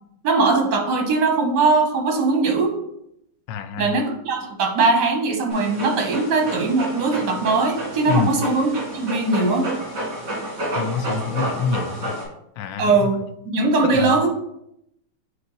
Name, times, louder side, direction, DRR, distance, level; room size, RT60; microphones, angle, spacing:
voice 1, 0.2-2.7 3.8-9.7 12.8-13.2 13.5-14.3, right 3 dB, 65° right, 3 dB, 1.7 m, -20 dB
voice 2, 3.5-4.0 8.1-8.3 10.7-12.1 12.6-13.1 13.8-14.2, left 6 dB, 75° left, 10 dB, 1.2 m, -26 dB
Dog, 5.5-12.2, right 1 dB, 45° right, 2.5 m, -30 dB
7.8 x 3.1 x 3.9 m, 0.78 s
omnidirectional pair, 2.1 m